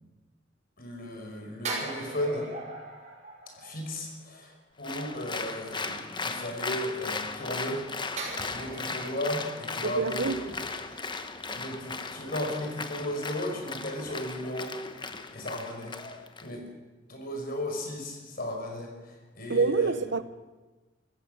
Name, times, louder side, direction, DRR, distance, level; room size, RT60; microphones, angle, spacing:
voice 1, 0.8-2.5 3.6-4.5 4.8-7.9 8.2-10.6 11.5-14.7 15.0-16.0 16.4-16.7 17.1-19.9, left 1 dB, 50° left, 5.4 m, -35 dB
sound 1, 1.6-4.3 8.2-11.4 11.7-11.9, right 2 dB, 40° right, 5.4 m, -40 dB
Applause, 4.8-16.5, left 4 dB, 25° left, 1.1 m, -37 dB
voice 2, 9.8-10.3 19.5-20.2, right 4 dB, 65° right, 0.9 m, -26 dB
25.5 x 15.0 x 6.8 m
head